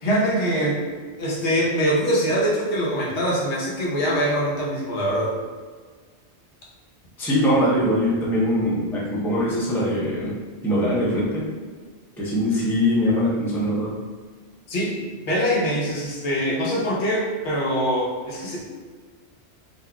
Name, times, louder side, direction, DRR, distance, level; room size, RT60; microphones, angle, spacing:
voice 1, 0.0-0.8 1.2-5.3 14.7-14.9 15.3-18.6, equal, 80° left, -4 dB, 1.1 m, -23 dB
voice 2, 7.2-11.5 12.2-13.9, equal, 5° left, -7 dB, 0.5 m, -22 dB
4.0 x 2.3 x 2.2 m, 1.5 s
omnidirectional pair, 1.1 m